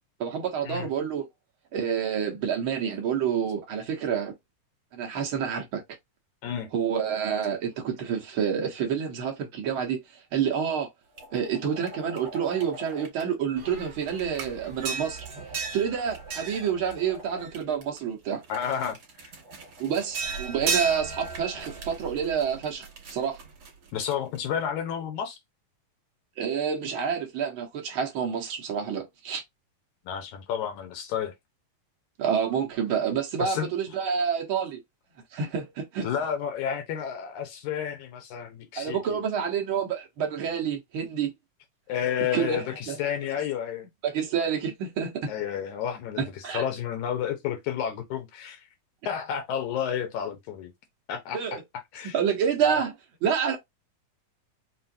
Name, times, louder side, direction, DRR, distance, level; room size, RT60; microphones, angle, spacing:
voice 1, 0.2-1.3 1.7-4.3 4.9-5.8 6.7-10.0 10.3-10.9 11.3-15.3 15.7-18.4 19.8-23.4 26.4-29.4 32.2-34.8 35.3-36.1 38.8-41.3 42.3-43.0 44.0-45.3 46.2-46.6 51.3-51.6 52.1-52.9 53.2-53.6, right 7 dB, 70° right, 1.2 m, -28 dB
sound 1, 11.2-13.2 13.6-18.0 18.4-24.4, right 4 dB, 50° right, 2.3 m, -36 dB
voice 2, 18.5-19.0 23.9-25.4 30.1-31.3 33.4-33.7 36.0-39.2 41.9-43.9 45.3-48.6 49.1-50.7 51.1-51.6 51.9-52.2, left 8 dB, 75° left, 2.0 m, -31 dB
5.5 x 2.5 x 2.6 m
omnidirectional pair, 3.7 m